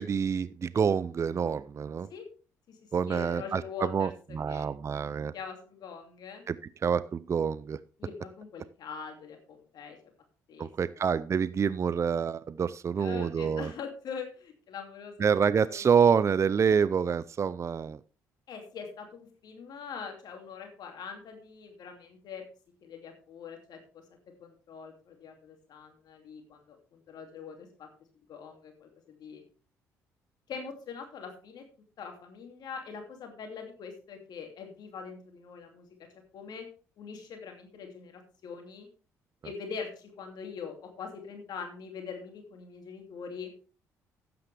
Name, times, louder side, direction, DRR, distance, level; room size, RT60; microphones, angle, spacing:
voice 1, 0.0-2.1 2.9-5.3 6.5-6.6 6.8-7.8 10.6-13.7 15.2-18.0, right 6 dB, 40° right, 17 dB, 0.5 m, -27 dB
voice 2, 3.1-4.7 5.3-6.4 8.0-10.0 10.5-10.7 10.9-11.0 13.0-15.8 18.5-22.4 22.8-24.0 24.4-27.9 28.3-29.4 30.5-31.6 32.0-35.9 36.3-36.7 37.0-38.9 39.4-43.5, left 6 dB, 65° left, 4 dB, 2.6 m, -43 dB
12.0 x 9.5 x 3.4 m, 0.36 s
hypercardioid pair, 55°, 8 cm